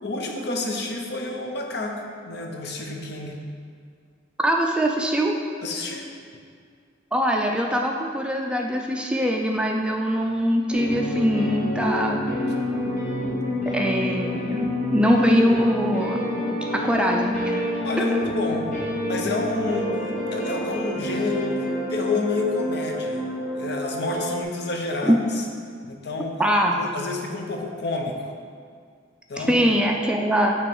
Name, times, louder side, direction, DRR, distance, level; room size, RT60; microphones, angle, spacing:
voice 1, 0.0-3.4 5.6-6.1 17.8-18.7 19.1-19.9 20.3-21.5 21.9-23.2 23.5-25.2 25.8-26.4 26.7-28.3 29.3-29.6, left 3 dB, 60° left, 1 dB, 0.8 m, -29 dB
voice 2, 4.4-5.4 7.1-12.2 13.7-16.2 16.7-17.7 25.0-25.2 26.4-26.8 29.4-30.6, equal, 5° right, 1 dB, 0.4 m, -22 dB
sound 1, 10.7-24.4, left 1 dB, 45° left, 1.2 m, -28 dB
8.9 x 3.1 x 4.6 m, 2.2 s
head